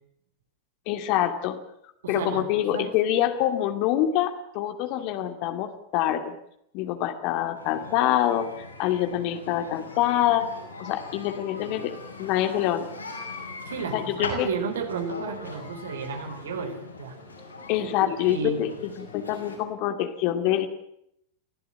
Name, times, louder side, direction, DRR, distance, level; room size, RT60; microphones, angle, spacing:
voice 1, 0.9-1.6 2.1-6.4 6.7-8.5 8.8-10.5 10.8-11.9 12.2-12.9 13.9-14.5 17.7-20.7, left 12 dB, 45° left, 7 dB, 2.3 m, -25 dB
voice 2, 2.0-2.9 13.7-17.2 18.0-18.6, right 5 dB, 60° right, 8 dB, 4.0 m, -33 dB
sound 1, 7.5-19.6, left 3 dB, 85° left, 7.3 m, -40 dB
24.5 x 16.5 x 8.7 m, 0.76 s
figure-of-eight pair, 90°, 0 cm